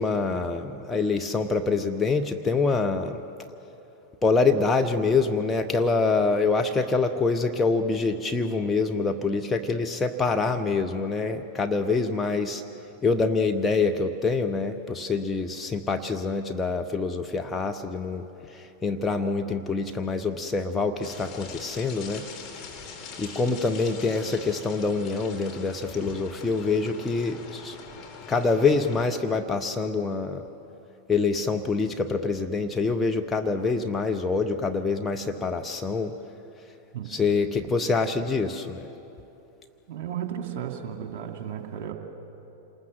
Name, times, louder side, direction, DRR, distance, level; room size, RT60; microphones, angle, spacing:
voice 1, 0.0-3.2 4.2-12.6 13.0-18.3 18.5-22.2 23.2-27.8 28.3-30.4 31.1-36.1 37.1-38.9, left 4 dB, 10° left, 3 dB, 1.0 m, -25 dB
sound 1, 21.0-29.0, left 5 dB, 35° left, 3.6 m, -42 dB
voice 2, 39.9-41.9, right 9 dB, 45° right, 4 dB, 2.6 m, -34 dB
27.5 x 20.5 x 7.7 m, 3.0 s
figure-of-eight pair, 90°, 0 cm